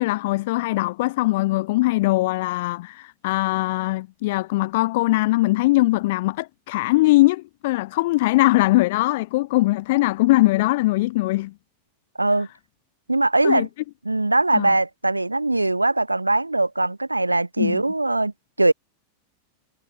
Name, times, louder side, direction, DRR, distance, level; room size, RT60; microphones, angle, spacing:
voice 1, 0.0-11.5 13.4-13.7 14.5-14.7 17.6-17.8, left 19 dB, 50° left, 0.5 m, -21 dB
voice 2, 13.1-13.7 14.0-18.3 18.6-18.7, right 2 dB, 85° right, 0.5 m, -21 dB
figure-of-eight pair, 90°, 0 cm